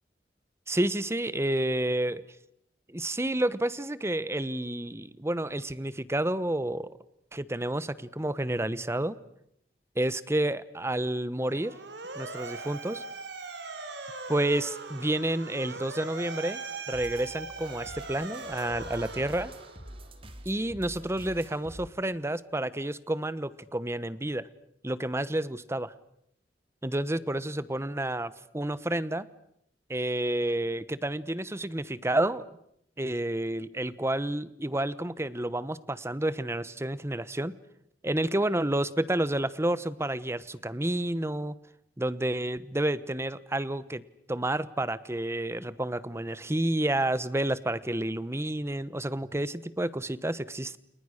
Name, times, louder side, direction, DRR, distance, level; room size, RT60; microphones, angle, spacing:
voice 1, 0.7-2.2 2.9-7.0 7.3-9.2 10.0-11.7 12.1-13.0 14.3-16.6 16.9-19.5 20.4-24.5 24.8-25.9 26.8-29.3 29.9-32.4 33.0-37.5 38.0-41.5 42.0-44.0 44.3-50.8, right 1 dB, 15° right, 16 dB, 1.0 m, -30 dB
Motor vehicle (road) / Siren, 11.4-20.0, right 3 dB, 90° right, 3.3 m, -40 dB
sound 1, 16.9-21.9, right 1 dB, 35° right, 2.6 m, -46 dB
30.0 x 29.5 x 6.6 m, 0.74 s
head